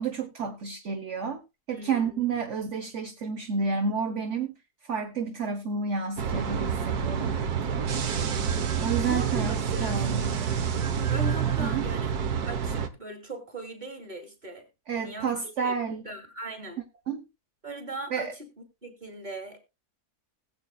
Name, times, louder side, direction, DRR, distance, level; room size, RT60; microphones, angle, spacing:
voice 1, 0.0-1.4 1.7-4.5 4.9-7.3 8.8-10.3 11.6-11.8 14.9-16.0 17.1-17.2 18.1-18.3, right 5 dB, 50° right, 1.5 m, -30 dB
voice 2, 1.7-2.4 9.0-10.8 11.1-12.1 12.5-14.7 14.9-16.8 17.6-18.5 18.8-19.6, right 1 dB, 25° right, 3.0 m, -40 dB
sound 1, 6.2-12.9, right 7 dB, 70° right, 1.6 m, -28 dB
20.0 x 8.1 x 2.3 m
omnidirectional pair, 1.7 m